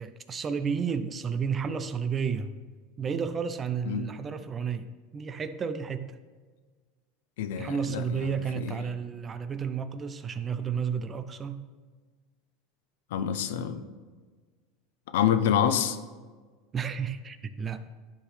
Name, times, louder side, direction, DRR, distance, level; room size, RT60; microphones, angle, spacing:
voice 1, 0.0-2.5 3.0-6.2 7.6-11.7 16.7-17.8, right 6 dB, 20° right, 11 dB, 0.4 m, -32 dB
voice 2, 7.4-8.7 13.1-13.8 15.1-16.0, left 9 dB, 85° left, 11 dB, 0.6 m, -27 dB
11.5 x 4.8 x 3.2 m, 1.4 s
supercardioid pair, 140°, 0 cm